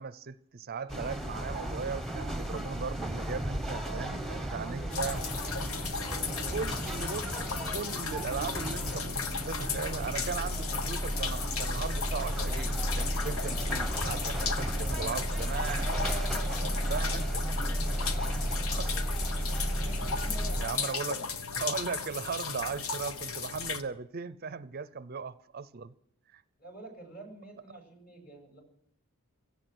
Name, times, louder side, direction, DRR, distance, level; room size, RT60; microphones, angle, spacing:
voice 1, 0.0-5.2 6.5-7.4 7.7-15.9 16.9-17.2 18.7-19.0 20.6-21.2 21.6-25.9 26.3-26.4, right 5 dB, 45° right, 0.5 m, -37 dB
sound 1, 0.9-20.7, right 1 dB, ahead, 1.0 m, -33 dB
voice 2, 3.8-5.5 6.0-6.6 7.3-7.8 14.7-17.3 17.7-21.4 26.6-28.6, right 2 dB, 45° left, 6.4 m, -47 dB
sound 2, 4.9-23.8, left 5 dB, 75° left, 1.1 m, -36 dB
17.0 x 14.0 x 6.2 m
head